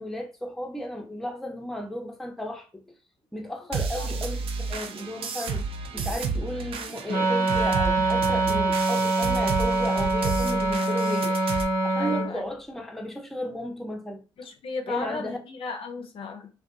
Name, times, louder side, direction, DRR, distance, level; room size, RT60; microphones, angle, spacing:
voice 1, 0.0-2.8 3.3-11.4 11.8-14.2 14.9-15.4, left 1 dB, ahead, 0.6 m, -34 dB
sound 1, 3.7-11.6, right 5 dB, 50° right, 0.4 m, -32 dB
Wind instrument woodwind instrument, 7.1-12.3, right 2 dB, 85° right, 1.1 m, -24 dB
voice 2, 11.9-12.5 14.4-16.5, left 4 dB, 50° left, 0.5 m, -35 dB
2.5 x 2.2 x 2.5 m
hypercardioid pair, 55°, 12 cm